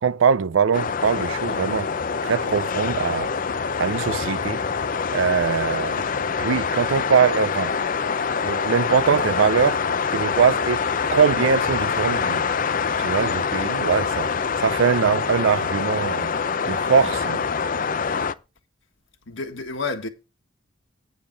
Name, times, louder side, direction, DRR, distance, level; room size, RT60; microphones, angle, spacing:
voice 1, 0.0-1.9 2.2-3.3 3.8-4.6 5.1-6.0 6.4-7.7 8.4-9.8 10.1-10.8 11.1-12.4 13.0-14.3 14.6-16.3 16.7-17.4, right 6 dB, 70° right, 0.4 m, -22 dB
sound 1, 0.7-18.3, left 5 dB, 40° left, 0.5 m, -25 dB
voice 2, 19.3-20.1, left 3 dB, 65° left, 1.6 m, -29 dB
9.3 x 7.1 x 4.1 m
head